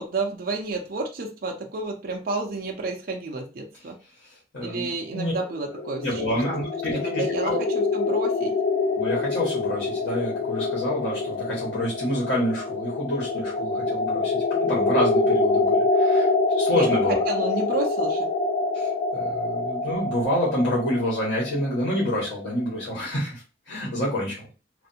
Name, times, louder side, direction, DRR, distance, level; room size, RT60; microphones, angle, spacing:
voice 1, 0.0-4.0 4.6-6.2 6.7-7.7 7.9-8.5 16.7-18.3, right 3 dB, 55° right, 2 dB, 0.5 m, -31 dB
voice 2, 4.2-5.3 6.0-7.6 9.0-16.3 16.5-17.2 18.7-24.5, left 1 dB, 70° left, -5 dB, 1.4 m, -28 dB
sound 1, 5.6-22.4, left 3 dB, 50° left, 0.5 m, -25 dB
3.3 x 2.5 x 2.7 m, 0.33 s
head